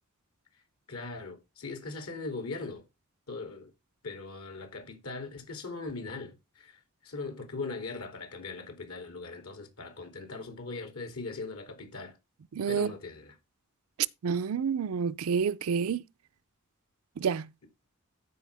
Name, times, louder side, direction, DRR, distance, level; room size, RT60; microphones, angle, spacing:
voice 1, 0.9-2.8 3.3-3.7 4.0-12.2 12.7-13.4, left 3 dB, 75° left, 2.8 m, -40 dB
voice 2, 12.5-12.9 14.2-16.0 17.2-17.5, right 6 dB, 70° right, 0.4 m, -29 dB
14.0 x 5.0 x 3.4 m
head